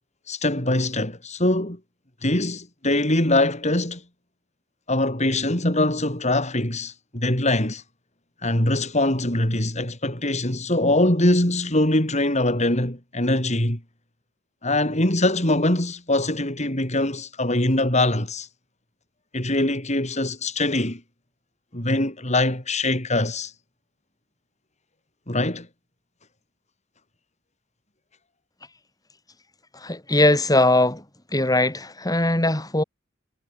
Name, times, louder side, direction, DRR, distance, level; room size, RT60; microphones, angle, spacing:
voice 1, 0.3-1.8 2.2-4.0 4.9-7.8 8.4-13.8 14.6-18.5 19.3-21.0 21.7-23.5 25.3-25.7, left 1 dB, 35° left, 5.8 m, -23 dB
voice 2, 29.7-31.0 31.3-32.8, left 2 dB, 20° left, 6.5 m, -20 dB
head